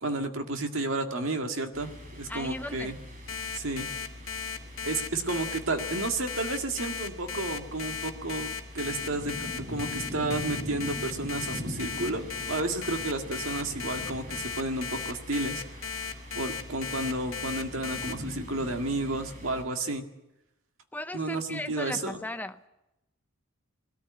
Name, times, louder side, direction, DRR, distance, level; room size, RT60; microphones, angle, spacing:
voice 1, 0.0-3.0 3.5-3.9 4.8-8.5 8.7-15.6 16.3-20.1 21.1-22.2, right 2 dB, 65° right, 5 dB, 2.0 m, -32 dB
sound 1, 1.7-19.6, equal, 40° right, 4.3 m, -42 dB
voice 2, 2.3-2.9 20.9-22.7, left 2 dB, 10° left, 9 dB, 0.7 m, -37 dB
Alarm, 3.3-18.1, left 6 dB, 85° left, 1.4 m, -36 dB
20.5 x 13.5 x 9.5 m, 0.93 s
head